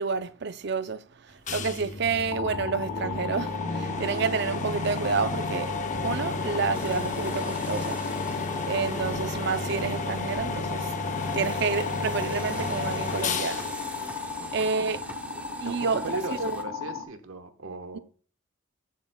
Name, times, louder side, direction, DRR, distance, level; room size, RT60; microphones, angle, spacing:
voice 1, 0.0-5.7 6.0-8.0 8.7-10.9 11.3-13.6 14.0-14.2 14.5-15.0 15.6-16.6, right 4 dB, 55° right, 0.5 m, -29 dB
sound 1, 1.5-15.0, left 3 dB, 35° left, 0.7 m, -33 dB
sound 2, 2.3-17.0, left 5 dB, 75° left, 1.2 m, -36 dB
sound 3, 6.7-16.6, right 2 dB, 5° right, 0.7 m, -45 dB
voice 2, 14.4-14.7 15.6-15.8 16.0-18.0, right 3 dB, 85° right, 1.2 m, -37 dB
16.0 x 7.4 x 2.2 m
head